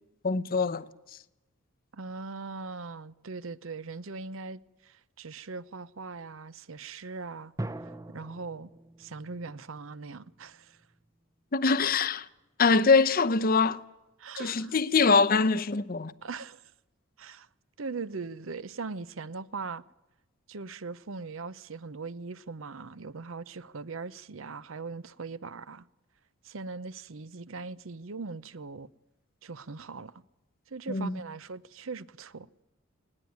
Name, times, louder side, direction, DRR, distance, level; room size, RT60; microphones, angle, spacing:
voice 1, 0.2-0.8 11.5-12.2 12.6-13.8 14.4-16.1 30.9-31.2, left 4 dB, 40° left, 0.7 m, -23 dB
voice 2, 1.9-7.5 7.8-8.7 9.0-10.8 14.2-14.7 16.2-16.7 17.2-17.5 17.8-19.8 20.5-25.9 26.4-28.9 29.4-30.1 30.7-32.5, right 4 dB, 65° right, 0.7 m, -40 dB
sound 1, 7.6-11.0, right 1 dB, 15° right, 0.7 m, -42 dB
19.5 x 18.5 x 9.4 m
head